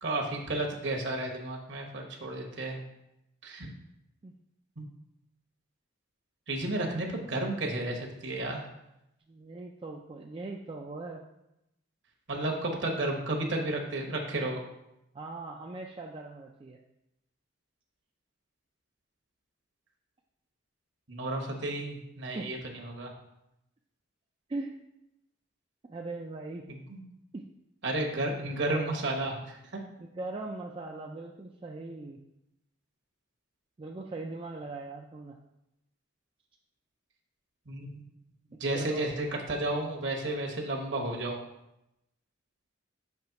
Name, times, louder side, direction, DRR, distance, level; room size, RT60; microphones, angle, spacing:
voice 1, 0.0-2.9 3.4-3.7 4.8-4.9 6.5-8.7 12.3-14.6 21.1-23.1 26.7-27.0 27.8-29.8 37.7-38.0 38.6-41.4, right 2 dB, 60° right, 1 dB, 1.1 m, -32 dB
voice 2, 9.3-11.2 15.1-16.8 22.3-22.5 24.5-24.8 25.9-26.7 27.3-27.5 30.0-32.2 33.8-35.4 38.7-39.1, right 2 dB, 25° right, 0 dB, 0.3 m, -40 dB
5.8 x 3.2 x 5.7 m, 0.87 s
head